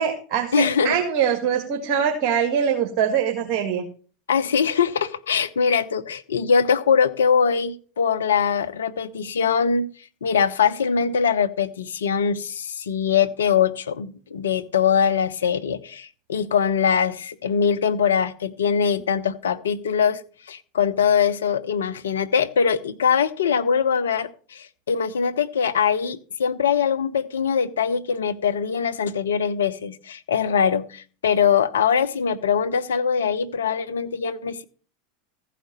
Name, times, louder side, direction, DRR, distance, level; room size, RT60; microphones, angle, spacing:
voice 1, 0.0-3.8, right 8 dB, 50° right, 2 dB, 1.9 m, -23 dB
voice 2, 0.5-1.0 4.3-9.9 10.2-20.2 20.5-34.6, left 7 dB, 80° left, 10 dB, 0.8 m, -22 dB
14.5 x 5.0 x 6.8 m, 0.41 s
hypercardioid pair, 90°, 0 cm